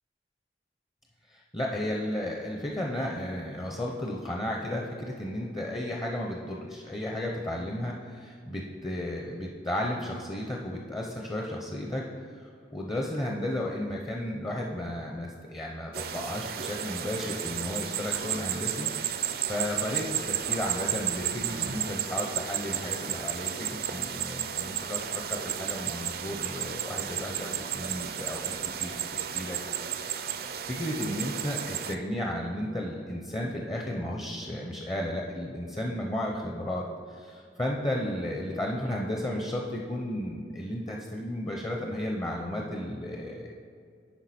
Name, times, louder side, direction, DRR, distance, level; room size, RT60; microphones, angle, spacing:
voice 1, 1.3-28.5 28.8-30.3 30.6-43.6, left 1 dB, 20° left, 0 dB, 0.6 m, -34 dB
sound 1, 15.9-32.0, right 9 dB, 55° right, 0.4 m, -33 dB
10.5 x 4.8 x 4.2 m, 2.3 s
head